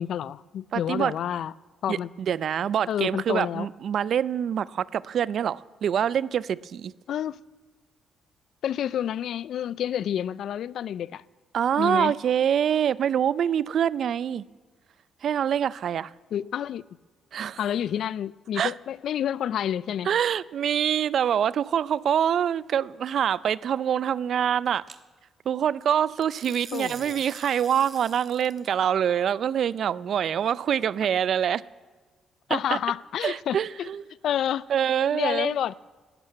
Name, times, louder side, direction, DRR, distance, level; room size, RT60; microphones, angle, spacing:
voice 1, 0.0-1.5 1.8-2.1 2.9-3.7 7.1-7.4 8.6-11.2 11.8-12.1 16.3-16.8 17.6-20.1 26.7-27.2 32.5-33.9 34.2-34.7 35.1-35.8, left 10 dB, 70° left, 0.4 m, -29 dB
voice 2, 0.7-1.2 1.9-6.9 11.5-14.5 15.2-16.1 17.3-17.6 18.6-18.7 20.1-24.8 25.5-31.6 32.5-32.8 33.2-34.0 34.7-35.5, right 9 dB, 60° right, 0.4 m, -25 dB
sound 1, 21.0-21.3 24.9-25.0 26.2-28.7, right 5 dB, 40° right, 1.1 m, -45 dB
13.0 x 11.5 x 9.2 m
cardioid pair, 90°, 0 cm